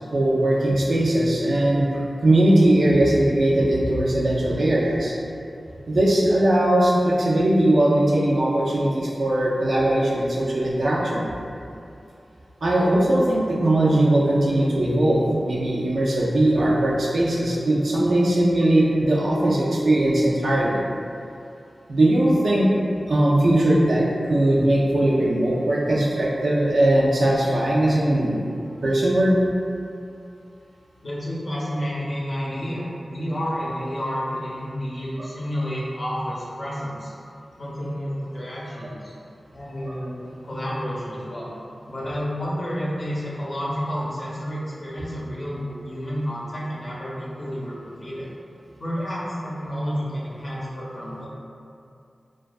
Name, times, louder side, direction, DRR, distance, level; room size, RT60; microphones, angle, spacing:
voice 1, 0.1-5.1 5.9-11.2 12.6-20.8 21.9-22.7 23.1-28.4 28.8-29.3 35.2-35.3 39.9-40.0 49.0-49.1, right 1 dB, 75° right, -5 dB, 0.4 m, -20 dB
voice 2, 31.0-37.1 37.6-39.1 39.5-41.5 41.9-48.3 48.8-51.3, equal, 50° left, -7 dB, 0.6 m, -30 dB
2.5 x 2.3 x 2.3 m, 2.5 s
cardioid pair, 50°, 0 cm